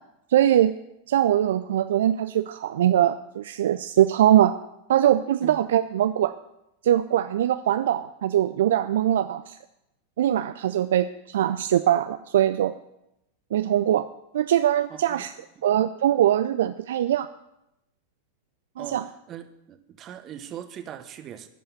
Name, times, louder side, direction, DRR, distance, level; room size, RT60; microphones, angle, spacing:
voice 1, 0.3-0.7 1.1-4.6 4.9-6.3 6.8-9.6 10.2-12.7 13.5-14.1 14.3-15.3 15.6-17.3 18.8-19.0, right 11 dB, 60° right, 11 dB, 0.4 m, -22 dB
voice 2, 14.9-15.3 18.8-19.0 19.3-21.5, right 10 dB, 30° right, 8 dB, 1.1 m, -40 dB
12.5 x 5.5 x 8.5 m, 0.87 s
figure-of-eight pair, 90°, 0 cm